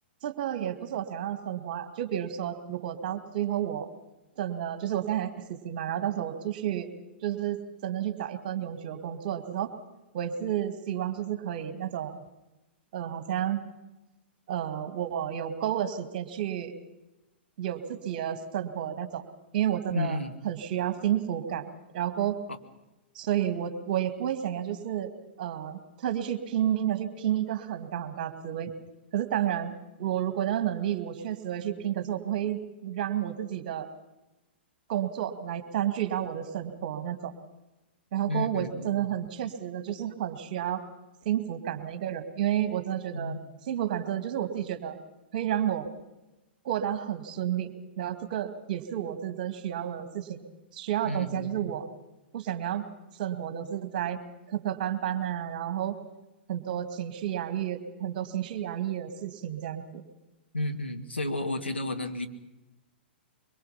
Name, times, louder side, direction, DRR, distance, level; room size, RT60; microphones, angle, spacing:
voice 1, 0.2-3.9 4.4-6.9 7.2-9.7 10.1-12.2 12.9-13.6 14.5-16.7 17.6-19.3 19.5-20.2 20.4-22.4 23.1-25.1 25.4-28.7 29.1-33.9 34.9-37.3 38.1-40.8 41.2-43.3 43.7-45.0 45.3-45.9 46.6-50.4 50.7-51.9 52.3-52.8 53.2-54.2 54.5-56.0 56.5-60.0, right 11 dB, 45° right, 9 dB, 2.1 m, -31 dB
voice 2, 19.9-20.3 38.3-39.0 43.1-43.4 51.0-51.7 60.5-62.3, left 2 dB, 80° left, 5 dB, 2.1 m, -32 dB
23.5 x 23.0 x 5.8 m, 1.0 s
figure-of-eight pair, 110°, 6 cm